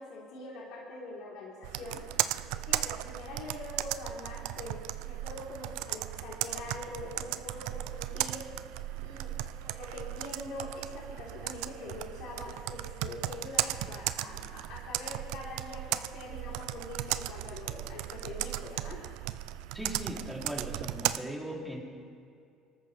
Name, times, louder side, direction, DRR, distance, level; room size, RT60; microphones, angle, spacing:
voice 1, 0.0-2.0 2.4-8.4 9.0-9.3 9.6-19.0, left 2 dB, 75° left, -6 dB, 3.7 m, -43 dB
Computer keyboard, 1.6-21.2, right 15 dB, 80° right, 0.4 m, -36 dB
voice 2, 19.7-21.8, right 1 dB, 5° right, -2 dB, 3.1 m, -38 dB
25.0 x 13.5 x 3.4 m, 2.3 s
cardioid pair, 115°, 0 cm